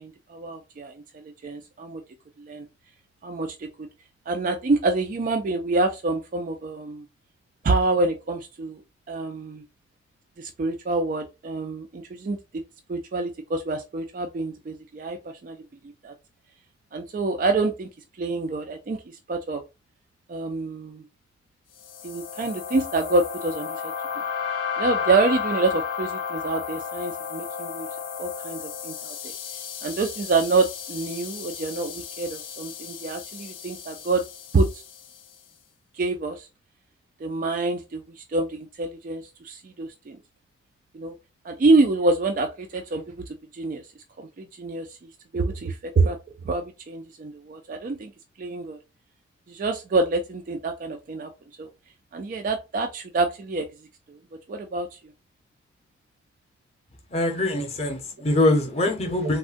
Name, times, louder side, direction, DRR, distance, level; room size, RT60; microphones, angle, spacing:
voice 1, 0.0-2.0 2.4-2.7 3.2-3.7 4.3-7.0 7.6-8.8 9.1-9.6 10.4-12.4 12.9-15.2 15.4-15.6 16.0-16.1 16.9-17.9 18.2-19.6 20.3-21.0 22.0-23.9 24.8-27.9 28.2-29.3 29.8-34.2 34.5-34.7 35.9-36.5 37.2-40.2 40.9-41.1 41.4-43.8 44.2-45.0 45.3-46.2 46.4-48.1 48.4-48.8 49.5-51.3 51.6-51.7 52.1-53.7 54.1-54.2 54.5-55.0, right 3 dB, 45° right, 0.3 m, -26 dB
sound 1, 21.8-35.2, left 7 dB, 85° left, 0.6 m, -33 dB
voice 2, 57.1-59.4, left 1 dB, 35° left, 0.7 m, -23 dB
3.5 x 2.1 x 2.5 m
head